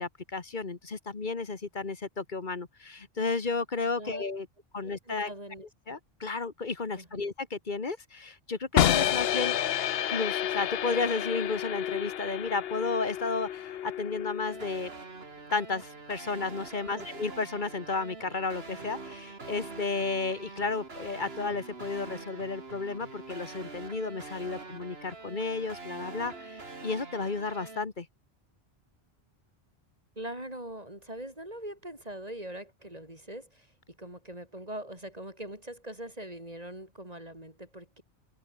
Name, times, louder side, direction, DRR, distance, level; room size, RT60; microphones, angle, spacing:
voice 1, 0.0-4.5 4.7-5.3 5.9-9.6 10.1-14.9 15.5-28.1, left 4 dB, 45° left, 1.6 m, -33 dB
voice 2, 4.8-6.0 7.0-7.3 16.8-17.1 30.2-33.7 34.0-38.0, right 1 dB, 35° right, 6.9 m, -42 dB
sound 1, 8.8-14.7, left 11 dB, 70° left, 0.9 m, -29 dB
sound 2, 14.5-27.8, right 3 dB, 65° right, 2.8 m, -44 dB
open air
omnidirectional pair, 1.1 m